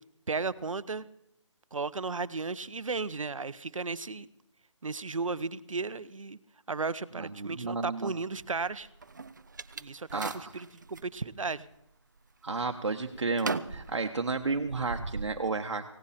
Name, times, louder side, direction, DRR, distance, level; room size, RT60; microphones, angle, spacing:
voice 1, 0.3-1.1 1.7-4.3 4.8-6.4 6.7-8.9 9.8-11.7, right 4 dB, 85° right, 16 dB, 0.9 m, -34 dB
voice 2, 7.2-8.1 10.1-10.5 12.4-15.9, right 4 dB, 60° right, 5 dB, 1.3 m, -32 dB
sound 1, 8.4-11.1 11.7-12.2 12.5-15.3, right 4 dB, 35° right, 0.6 m, -39 dB
17.5 x 17.0 x 4.3 m, 0.80 s
figure-of-eight pair, 175°, 16 cm